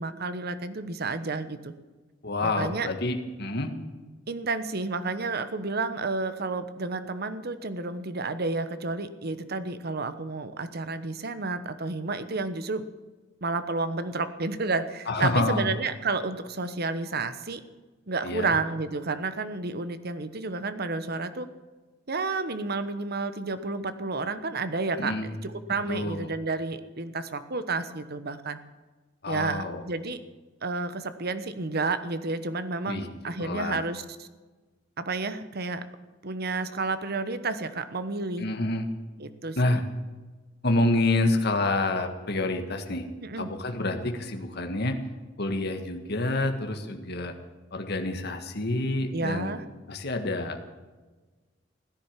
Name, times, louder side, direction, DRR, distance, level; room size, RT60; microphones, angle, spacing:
voice 1, 0.0-1.7 2.4-2.9 4.3-12.9 13.4-17.6 18.1-21.5 22.1-28.6 29.2-30.2 30.6-34.3 35.0-35.8 36.2-38.4 39.2-39.8 43.2-43.5 49.1-49.6, right 3 dB, 55° right, 11 dB, 1.1 m, -31 dB
voice 2, 2.2-3.7 15.1-15.7 18.2-18.5 25.0-25.3 25.9-26.3 29.2-29.8 32.9-33.1 33.4-33.8 38.4-38.9 39.6-39.8 40.6-43.1 43.4-45.0 45.4-47.3 47.7-49.5 49.9-50.6, left 2 dB, 60° left, 5 dB, 1.7 m, -28 dB
16.5 x 10.0 x 7.4 m, 1.3 s
head